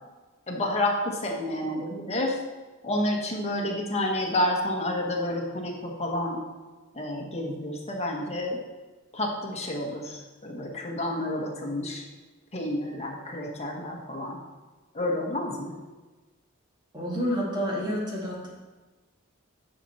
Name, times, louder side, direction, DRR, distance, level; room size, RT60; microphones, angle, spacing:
voice 1, 0.5-2.4 2.8-6.4 6.9-8.6 9.1-12.0 12.5-14.4 14.9-15.7, left 1 dB, 30° left, 0 dB, 1.4 m, -29 dB
voice 2, 16.9-18.5, equal, 20° right, -4 dB, 2.3 m, -29 dB
9.6 x 6.0 x 4.2 m, 1.2 s
head